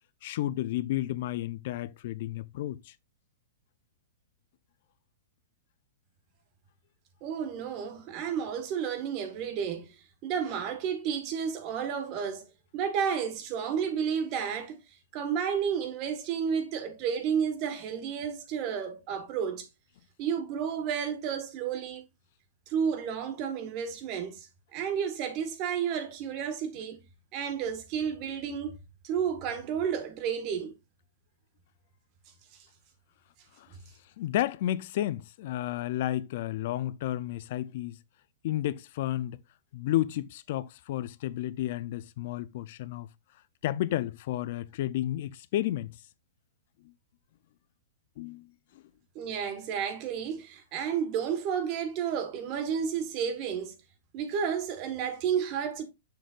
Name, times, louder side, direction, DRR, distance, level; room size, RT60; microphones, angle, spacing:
voice 1, 0.2-2.9 33.6-33.7 34.2-38.0 38.4-39.4 39.7-43.1 43.6-46.0 48.2-48.5, left 13 dB, 55° left, 0.4 m, -32 dB
voice 2, 7.2-9.9 10.2-12.5 12.7-14.8 15.1-19.7 20.2-22.0 22.7-27.0 27.3-28.8 29.0-30.7 49.1-53.7 54.1-55.8, right 7 dB, 35° right, 1.5 m, -31 dB
6.7 x 6.2 x 2.4 m
hypercardioid pair, 150°, 0 cm